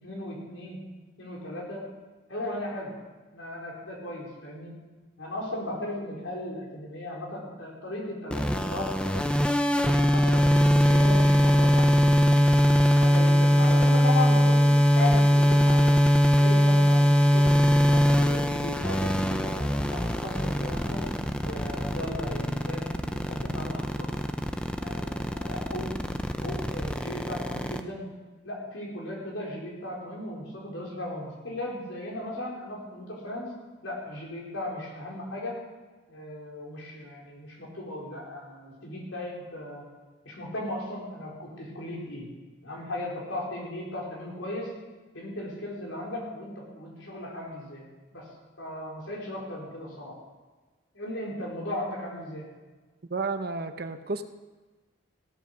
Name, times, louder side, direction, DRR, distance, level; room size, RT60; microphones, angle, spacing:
voice 1, 0.0-0.8 1.2-1.8 2.3-2.9 3.3-4.8 5.2-9.4 9.9-12.7 13.0-16.0 16.3-17.5 17.9-21.1 21.4-24.2 24.8-25.9 26.4-28.1 28.4-33.5 33.8-35.6 36.1-39.8 40.2-42.3 42.6-44.7 45.1-47.8 48.1-48.2 48.6-50.2 50.9-52.5, left 1 dB, 80° left, -3 dB, 4.4 m, -36 dB
sound 1, 8.3-27.8, equal, 5° left, 0.5 m, -22 dB
voice 2, 53.1-54.2, right 3 dB, 50° right, 9 dB, 0.8 m, -31 dB
16.0 x 8.3 x 6.6 m, 1.3 s
head